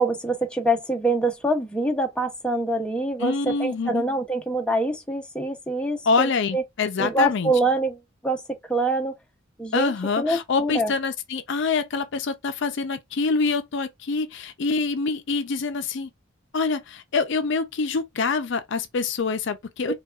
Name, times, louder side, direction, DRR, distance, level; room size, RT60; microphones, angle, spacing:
voice 1, 0.0-6.6 7.0-9.2 9.6-10.9 19.9-20.0, right 2 dB, 5° left, 0.6 m, -25 dB
voice 2, 3.2-4.0 6.1-7.5 9.7-16.1 16.5-19.9, left 4 dB, 60° left, 0.4 m, -25 dB
4.6 x 2.3 x 2.3 m
head